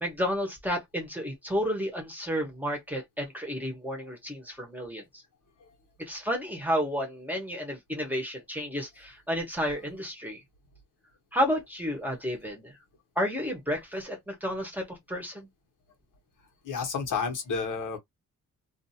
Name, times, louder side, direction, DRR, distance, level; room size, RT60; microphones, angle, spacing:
voice 1, 0.0-5.0 6.0-10.4 11.3-12.8 13.2-15.5, equal, 5° right, 1.0 m, -31 dB
voice 2, 16.6-18.0, left 5 dB, 80° left, 1.3 m, -31 dB
2.6 x 2.5 x 2.7 m
wide cardioid pair, 160°, 31 cm